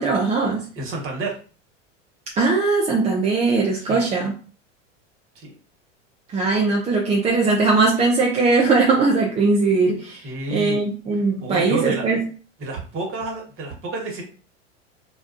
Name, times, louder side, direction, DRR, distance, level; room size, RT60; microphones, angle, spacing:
voice 1, 0.0-0.7 2.4-4.3 6.3-10.2 10.5-12.2, right 3 dB, 20° right, -2 dB, 0.4 m, -20 dB
voice 2, 0.8-1.4 3.8-4.0 5.3-5.5 10.2-10.8 11.4-12.0 12.6-14.2, right 3 dB, 35° right, 0 dB, 1.2 m, -29 dB
2.3 x 2.3 x 2.5 m, 0.37 s
hypercardioid pair, 100°, 37 cm